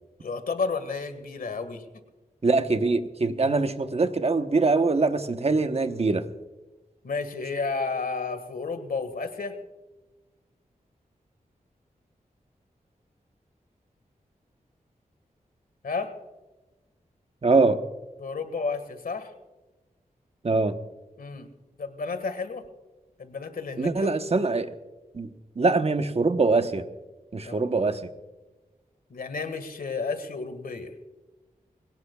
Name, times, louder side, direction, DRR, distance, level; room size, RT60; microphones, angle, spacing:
voice 1, 0.2-1.8 7.0-9.5 15.8-16.1 18.2-19.3 21.2-21.5 21.8-22.6 23.2-24.1 27.5-27.7 29.1-30.9, left 4 dB, 80° left, 9 dB, 1.8 m, -32 dB
voice 2, 2.4-6.2 17.4-17.8 20.4-20.7 23.8-24.7 25.1-25.3 25.6-26.8 27.3-28.0, right 3 dB, 45° right, 8 dB, 1.1 m, -23 dB
22.0 x 18.0 x 2.4 m, 1.1 s
wide cardioid pair, 80°, 15 cm